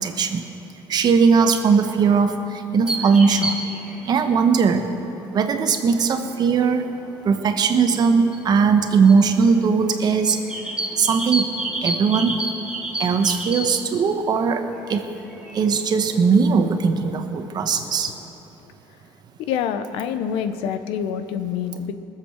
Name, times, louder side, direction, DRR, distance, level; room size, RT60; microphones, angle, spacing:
voice 1, 0.0-0.4 0.9-3.6 4.0-4.8 5.3-6.8 7.2-10.4 11.0-11.5 11.8-12.4 13.0-14.6 14.9-15.1 15.5-18.1, right 5 dB, 45° right, 7 dB, 1.2 m, -19 dB
sound 1, 2.9-18.2, right 1 dB, 10° right, 2.2 m, -33 dB
voice 2, 19.4-22.0, left 8 dB, 80° left, 10 dB, 0.8 m, -26 dB
20.0 x 7.6 x 6.6 m, 2.8 s
cardioid pair, 100°, 9 cm